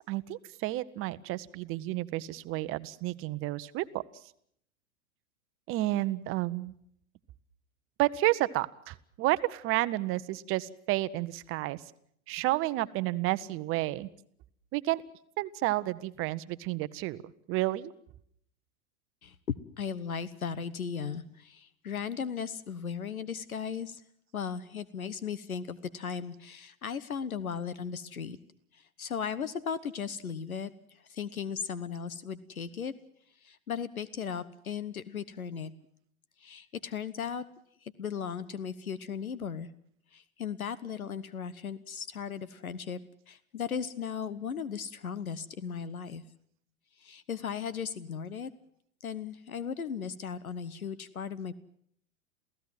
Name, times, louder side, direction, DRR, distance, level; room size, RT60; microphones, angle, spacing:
voice 1, 0.1-4.0 5.7-6.7 8.0-11.8 12.3-14.1 14.7-15.0 15.4-17.2 17.5-17.9, right 17 dB, 30° right, 15 dB, 1.0 m, -31 dB
voice 2, 19.2-24.0 24.3-28.4 28.7-32.9 33.4-35.7 36.4-37.4 37.8-39.7 40.1-43.0 43.3-46.2 47.0-48.5 49.0-51.5, left 7 dB, 80° left, 16 dB, 1.2 m, -37 dB
28.0 x 16.5 x 7.5 m, 0.68 s
figure-of-eight pair, 100°, 42 cm